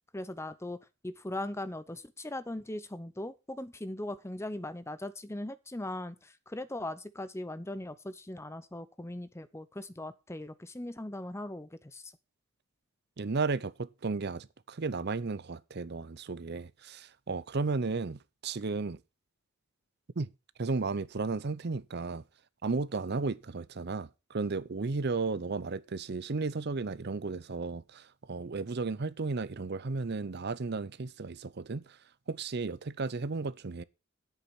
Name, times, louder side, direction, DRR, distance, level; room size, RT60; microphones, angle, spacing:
voice 1, 0.1-12.1, left 1 dB, 10° left, 0.7 m, -39 dB
voice 2, 13.2-19.0 20.2-20.3 20.6-22.2 22.6-32.0 32.3-33.8, right 3 dB, 50° right, 0.6 m, -34 dB
10.5 x 8.3 x 6.0 m
head